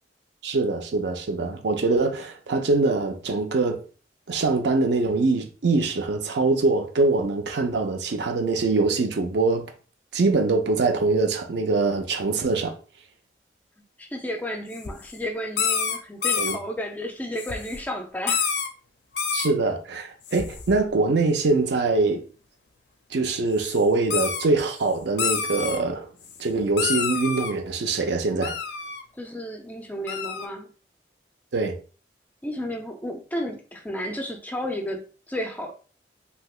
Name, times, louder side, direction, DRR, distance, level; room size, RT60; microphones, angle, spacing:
voice 1, 0.4-3.8 4.3-9.7 10.1-12.8 16.4-16.6 19.3-22.2 23.1-26.1 26.4-28.6 31.5-31.8, right 3 dB, 70° right, 0.5 m, -23 dB
voice 2, 14.0-18.5 29.1-30.7 32.4-35.7, equal, 10° left, 0.3 m, -32 dB
sound 1, 14.7-15.1 15.6-16.6 17.4-17.8 18.3-18.7 19.1-19.5 20.3-20.8 23.6-23.8 24.1-24.4 25.2-25.8 26.2-26.4 26.8-27.5 28.4-29.0 30.1-30.5, left 6 dB, 70° left, 0.5 m, -27 dB
3.3 x 2.8 x 2.4 m
head